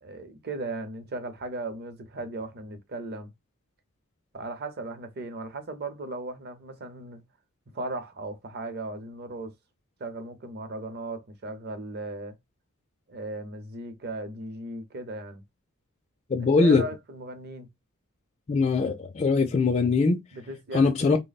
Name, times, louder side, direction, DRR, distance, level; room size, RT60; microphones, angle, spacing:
voice 1, 0.0-3.3 4.3-7.2 7.7-9.6 10.0-12.3 13.1-15.4 16.6-17.7 20.3-21.1, right 2 dB, 50° right, 0.7 m, -37 dB
voice 2, 16.3-16.8 18.5-20.2 20.7-21.2, left 4 dB, 30° left, 0.3 m, -22 dB
3.3 x 2.1 x 4.0 m
head